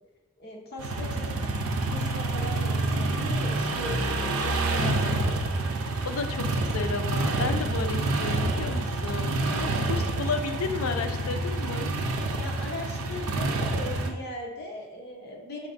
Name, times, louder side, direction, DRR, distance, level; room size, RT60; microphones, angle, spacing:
voice 1, 0.4-1.5 1.9-5.3 9.4-9.7 12.4-15.7, left 1 dB, 50° left, 0 dB, 0.9 m, -39 dB
sound 1, 0.8-14.1, right 2 dB, 85° right, 0.5 m, -28 dB
voice 2, 4.8-5.3 6.0-9.3 9.9-11.9, left 4 dB, 85° left, 8 dB, 0.4 m, -32 dB
4.9 x 4.1 x 2.5 m, 1.2 s
head